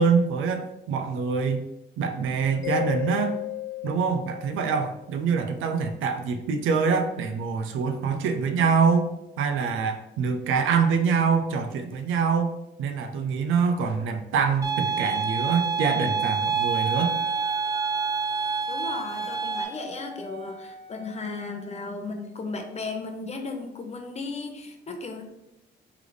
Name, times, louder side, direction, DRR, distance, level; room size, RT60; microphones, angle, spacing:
voice 1, 0.0-1.7 2.0-3.4 3.8-9.1 9.4-17.1, right 5 dB, 85° right, 7 dB, 0.5 m, -25 dB
Mallet percussion, 2.6-5.2, left 14 dB, 75° left, 1.2 m, -33 dB
sound 1, 14.6-19.6, right 5 dB, 15° right, 0.7 m, -27 dB
Wind instrument woodwind instrument, 16.7-21.8, right 4 dB, 60° right, 1.1 m, -45 dB
voice 2, 18.7-25.2, left 3 dB, 35° left, 5 dB, 0.7 m, -35 dB
3.3 x 3.1 x 3.8 m, 0.88 s
cardioid pair, 90°, 20 cm